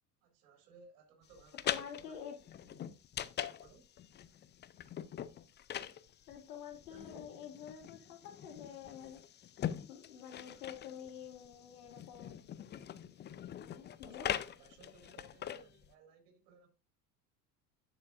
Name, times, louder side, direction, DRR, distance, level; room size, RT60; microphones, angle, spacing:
voice 1, 0.2-2.2 2.5-2.8 3.4-3.9 6.8-7.3 10.4-11.1 13.9-16.7, right 5 dB, 60° right, 3.2 m, -61 dB
sound 1, 1.3-15.9, left 10 dB, 20° left, 0.5 m, -43 dB
voice 2, 1.6-2.4 6.3-9.2 9.9-12.3 13.6-14.3, left 9 dB, 70° left, 2.3 m, -48 dB
10.5 x 6.9 x 2.5 m
figure-of-eight pair, 70°, 48 cm